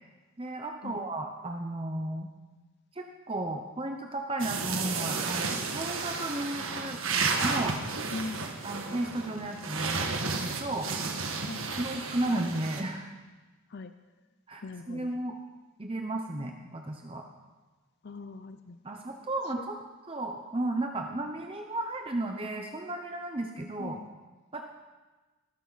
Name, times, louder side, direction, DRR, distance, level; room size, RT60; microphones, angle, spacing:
voice 1, 0.4-2.3 2.9-7.0 7.4-7.7 8.6-10.1 10.4-10.9 11.7-13.1 14.5-15.4 15.8-17.2 18.8-19.8 20.1-24.0 24.5-24.6, right 1 dB, 25° right, 3 dB, 0.8 m, -34 dB
sound 1, 4.4-12.8, right 4 dB, 70° right, 1.6 m, -32 dB
voice 2, 8.1-8.5 11.5-11.8 13.7-13.9 14.6-15.1 18.0-18.8 19.6-19.7 23.8-24.1, left 3 dB, 50° left, 10 dB, 0.5 m, -40 dB
19.0 x 12.0 x 4.1 m, 1.2 s
head